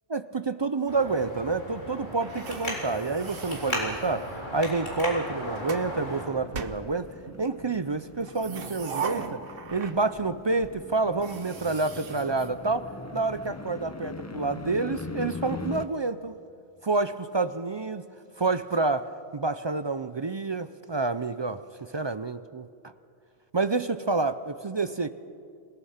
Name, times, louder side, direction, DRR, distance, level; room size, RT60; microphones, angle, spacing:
voice 1, 0.1-7.1 7.4-9.4 9.7-16.4 16.8-18.0 18.4-21.6 21.9-22.7 23.5-25.1, right 3 dB, 40° right, 12 dB, 0.4 m, -28 dB
Traffic noise roadway noise, 0.9-6.2, left 1 dB, 50° left, 4.3 m, -35 dB
sound 1, 2.2-4.5 5.2-5.9 6.5-7.4 8.2-10.3 10.6-10.7 11.1-13.2, right 5 dB, 60° right, 1.2 m, -39 dB
sound 2, 6.1-15.9, left 2 dB, 20° left, 0.7 m, -41 dB
26.5 x 18.0 x 5.7 m, 2.4 s
omnidirectional pair, 1.1 m